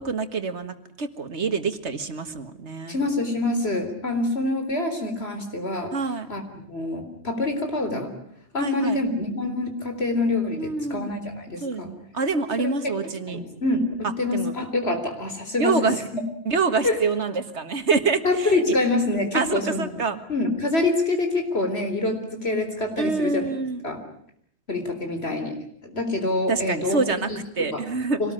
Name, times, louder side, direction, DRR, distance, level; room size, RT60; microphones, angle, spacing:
voice 1, 0.0-3.0 5.9-6.3 8.6-9.0 10.6-11.1 11.6-13.4 14.3-14.5 15.6-16.0 16.5-18.7 19.3-20.2 23.0-23.8 26.5-27.3 27.6-28.2, right 4 dB, 90° right, 10 dB, 2.0 m, -26 dB
voice 2, 2.9-5.9 6.3-8.1 8.5-11.9 12.6-12.7 13.3-15.8 16.8-17.0 18.2-19.9 20.3-23.5 23.8-24.0 24.7-25.5 25.8-27.0 27.3-27.4 27.7-27.8 28.2-28.3, left 2 dB, 65° left, 6 dB, 4.2 m, -26 dB
25.0 x 19.0 x 9.9 m, 0.68 s
omnidirectional pair, 1.1 m